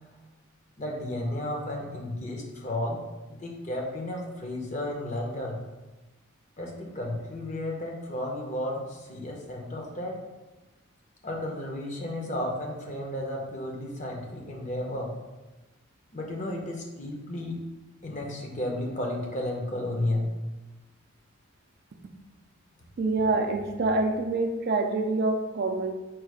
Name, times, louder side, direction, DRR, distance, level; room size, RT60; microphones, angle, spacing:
voice 1, 0.8-3.0 3.3-5.6 6.6-10.2 11.2-15.1 16.1-17.5 18.0-20.3, left 1 dB, 35° left, 0 dB, 0.7 m, -33 dB
voice 2, 23.0-25.9, right 3 dB, 45° right, 5 dB, 0.4 m, -26 dB
4.6 x 2.4 x 4.7 m, 1.1 s
head